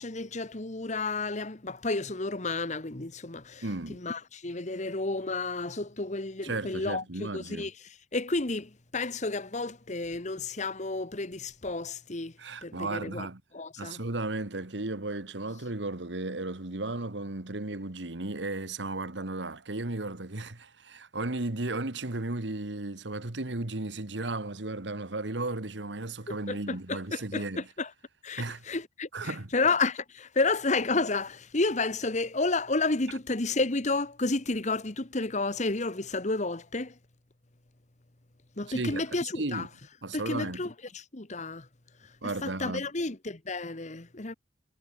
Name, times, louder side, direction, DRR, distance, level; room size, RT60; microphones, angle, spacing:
voice 1, 0.0-3.6 3.9-7.0 7.3-7.7 8.1-12.3 12.6-13.3 13.5-14.0 26.3-27.9 28.2-36.9 38.6-39.7 40.1-41.7 42.2-44.3, left 3 dB, 40° left, 1.4 m, -31 dB
voice 2, 3.6-4.0 6.4-7.7 12.4-13.4 13.8-27.7 28.4-28.6 29.1-29.5 38.7-39.7 40.0-40.6 42.2-42.9, right 2 dB, 75° right, 1.8 m, -35 dB
head